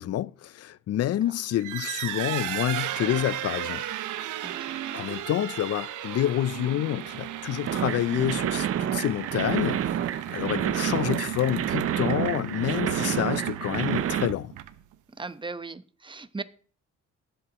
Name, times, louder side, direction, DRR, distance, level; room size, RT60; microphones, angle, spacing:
voice 1, 0.0-3.9 4.9-9.9 10.1-14.5, left 12 dB, 55° left, 0.5 m, -28 dB
sound 1, 1.5-14.9, right 12 dB, 80° right, 1.0 m, -35 dB
voice 2, 4.4-4.8 15.2-16.4, right 3 dB, 15° right, 0.9 m, -38 dB
sound 2, 7.7-14.3, right 10 dB, 50° right, 0.6 m, -29 dB
21.0 x 7.9 x 3.0 m
cardioid pair, 90°, 30 cm